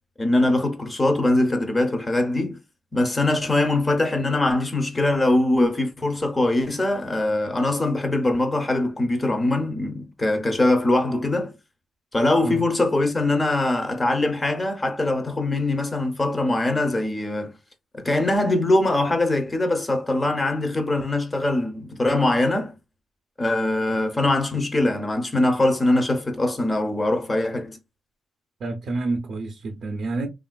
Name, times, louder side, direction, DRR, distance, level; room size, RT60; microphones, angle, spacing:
voice 1, 0.2-2.6 2.9-11.5 12.1-17.5 17.9-22.7 23.4-27.8, left 2 dB, 15° left, 0.6 m, -22 dB
voice 2, 28.6-30.3, right 3 dB, 50° right, 0.5 m, -28 dB
3.2 x 2.4 x 2.2 m
wide cardioid pair, 160°, 0 cm